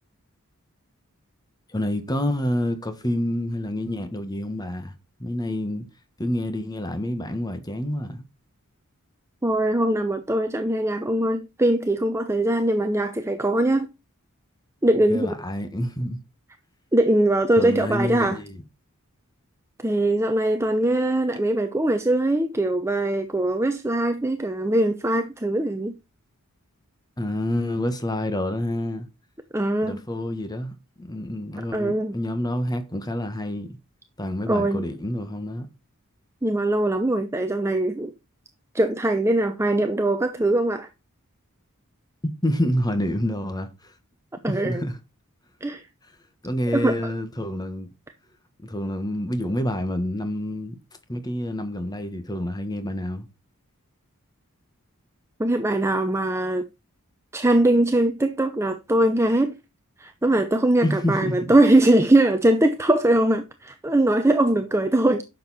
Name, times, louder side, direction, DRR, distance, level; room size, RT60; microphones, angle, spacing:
voice 1, 1.7-4.9 5.2-5.8 6.2-8.2 15.1-16.2 17.6-18.6 27.2-29.1 29.8-33.7 34.2-35.7 42.4-43.9 44.5-45.0 46.4-47.9 48.6-50.8 51.1-53.3 60.8-61.3, left 1 dB, 20° left, 1.3 m, -28 dB
voice 2, 9.4-13.9 14.8-15.3 16.9-18.4 19.8-26.0 29.5-30.0 31.7-32.2 34.5-34.8 36.4-38.1 38.7-40.9 44.4-44.8 45.6-45.8 46.7-46.9 55.4-56.6 57.3-59.6 60.0-65.2, right 1 dB, 10° right, 0.6 m, -21 dB
10.5 x 6.7 x 4.2 m
head